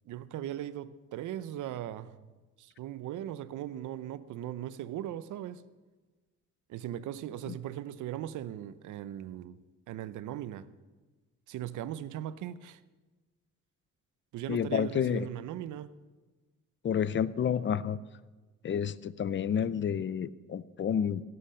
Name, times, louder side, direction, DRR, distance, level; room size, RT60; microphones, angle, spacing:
voice 1, 0.1-2.2 2.6-5.6 6.7-9.6 9.9-10.7 11.5-12.8 14.3-15.9, right 12 dB, 80° right, 0.7 m, -39 dB
voice 2, 14.5-15.3 16.8-18.0 18.6-21.2, left 8 dB, 40° left, 0.6 m, -30 dB
16.5 x 7.8 x 6.7 m
cardioid pair, 90°, 30 cm